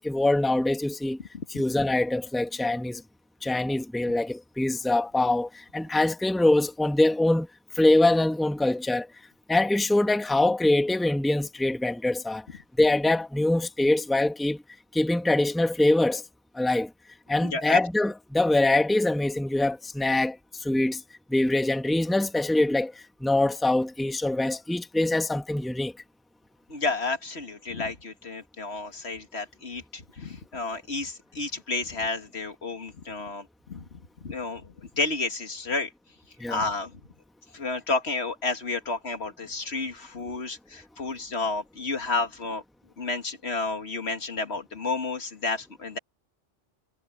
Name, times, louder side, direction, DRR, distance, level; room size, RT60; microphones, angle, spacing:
voice 1, 0.0-1.2 1.5-3.0 3.4-7.5 7.7-9.1 9.5-12.4 12.8-14.6 14.9-16.2 16.5-16.9 17.3-21.0 21.3-22.9 23.2-25.9 36.4-36.6, left 2 dB, ahead, 1.4 m, -24 dB
voice 2, 17.4-17.8 26.7-35.9 36.5-37.0 37.5-42.6 43.0-46.0, left 3 dB, 60° left, 2.1 m, -31 dB
omnidirectional pair, 1.2 m